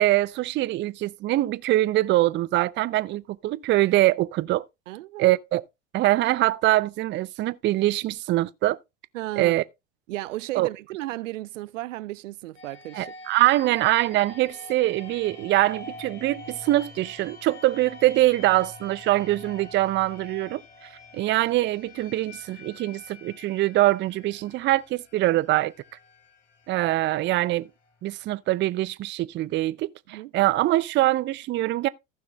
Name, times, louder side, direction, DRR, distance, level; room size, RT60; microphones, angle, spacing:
voice 1, 0.0-4.7 5.2-5.6 5.9-8.8 9.4-9.6 10.6-10.7 12.9-25.7 26.7-27.7 28.0-31.9, right 16 dB, 30° right, 0.5 m, -23 dB
voice 2, 4.9-5.4 9.1-9.6 10.1-13.1 30.1-30.3, right 17 dB, 80° right, 0.6 m, -34 dB
sound 1, 12.5-28.2, left 3 dB, 70° left, 4.2 m, -46 dB
14.5 x 6.0 x 3.3 m
hypercardioid pair, 95°, 38 cm